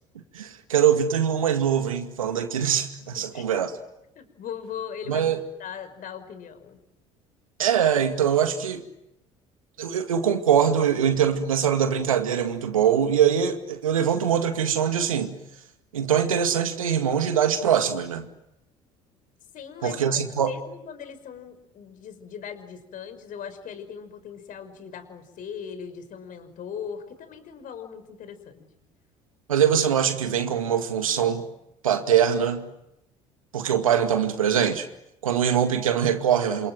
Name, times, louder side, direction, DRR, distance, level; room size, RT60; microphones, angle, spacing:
voice 1, 0.3-3.7 5.1-5.4 7.6-8.8 9.8-15.4 15.9-18.3 19.8-20.5 29.5-31.5 31.8-32.7 33.5-34.9 35.2-36.7, right 8 dB, 90° right, 2.2 m, -23 dB
voice 2, 4.2-5.3 5.6-6.8 19.5-28.7, left 7 dB, 55° left, 5.6 m, -39 dB
28.0 x 27.5 x 7.8 m
hypercardioid pair, 60°, 17 cm